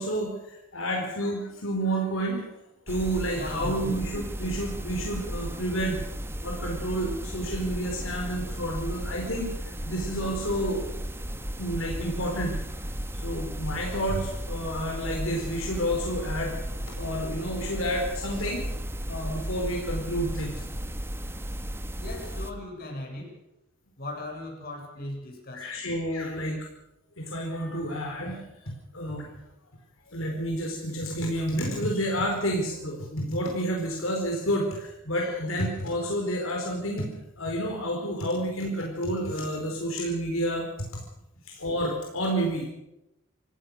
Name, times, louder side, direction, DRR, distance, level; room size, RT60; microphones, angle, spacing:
voice 1, 0.0-2.4 2.9-6.0 6.4-9.5 9.8-10.9 11.6-12.6 13.1-16.5 17.0-18.6 19.1-20.5 25.5-26.6 27.2-29.3 30.1-37.1 37.4-40.6 41.5-42.7, equal, 75° left, 0 dB, 4.6 m, -30 dB
sound 1, 2.9-22.5, equal, 10° right, 1.5 m, -35 dB
voice 2, 3.4-4.0 22.0-23.4 24.0-25.7, left 1 dB, 45° left, 1 dB, 7.4 m, -38 dB
27.0 x 15.5 x 6.6 m, 0.87 s
head